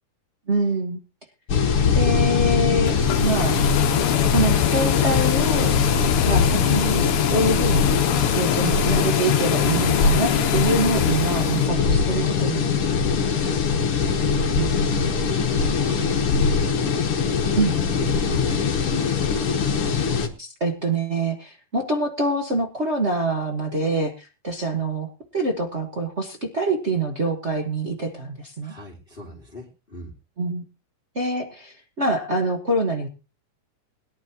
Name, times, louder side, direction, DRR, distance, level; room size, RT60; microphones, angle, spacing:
voice 1, 0.5-1.0 1.9-3.6 4.3-5.8 6.3-13.2 14.5-15.1 17.6-17.7 20.4-28.7 30.4-30.6 31.1-33.1, right 2 dB, 50° right, -1 dB, 0.7 m, -25 dB
sound 1, 1.5-20.3, left 5 dB, 50° left, 2.2 m, -21 dB
sound 2, 2.8-11.7, left 12 dB, 70° left, 2.0 m, -26 dB
voice 2, 15.2-16.7 17.7-19.6 28.6-30.1, left 2 dB, 15° left, -2 dB, 2.6 m, -40 dB
21.5 x 11.0 x 2.9 m, 0.30 s
omnidirectional pair, 3.7 m